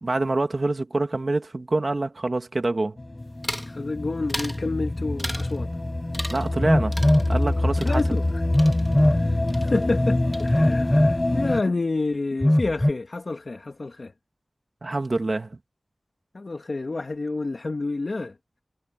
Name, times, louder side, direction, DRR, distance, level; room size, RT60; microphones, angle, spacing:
voice 1, 0.0-3.0 6.3-8.0 14.8-15.6, right 2 dB, 60° right, 2.2 m, -26 dB
sound 1, 3.0-11.6, left 2 dB, 40° left, 4.3 m, -26 dB
sound 2, 3.4-3.8 4.3-4.6 5.2-5.6 6.1-6.6 6.9-9.2 9.5-10.1 10.3-10.9, equal, 5° right, 2.2 m, -36 dB
voice 2, 3.7-5.7 7.8-8.2 9.1-14.1 16.3-18.3, left 3 dB, 70° left, 1.5 m, -29 dB
Telephone, 6.6-7.3 8.5-9.2 10.5-11.2 12.4-12.9, left 1 dB, 20° left, 1.4 m, -20 dB
wide cardioid pair, 50°, 0 cm